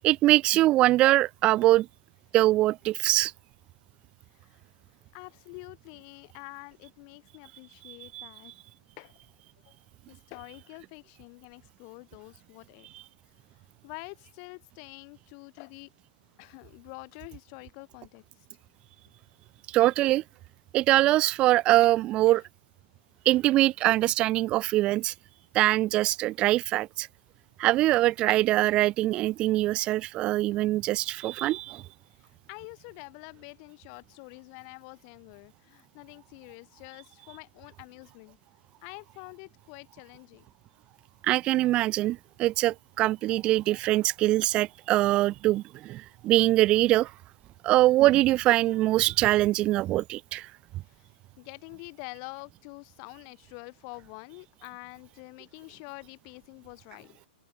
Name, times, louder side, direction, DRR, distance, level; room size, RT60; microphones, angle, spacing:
voice 1, 0.0-1.9 2.3-3.3 7.9-8.3 19.7-20.2 20.7-22.4 23.3-25.1 25.5-27.1 27.6-31.8 41.2-47.1 47.6-50.5, right 16 dB, 20° right, 0.3 m, -23 dB
voice 2, 5.1-8.5 9.0-9.2 9.7-9.8 10.1-12.9 13.8-15.9 16.4-18.2 22.3-22.5 32.1-38.4 38.8-40.5 50.8-51.1 51.4-57.3, left 40 dB or more, 30° left, 2.9 m, -46 dB
open air
hypercardioid pair, 165°, 5 cm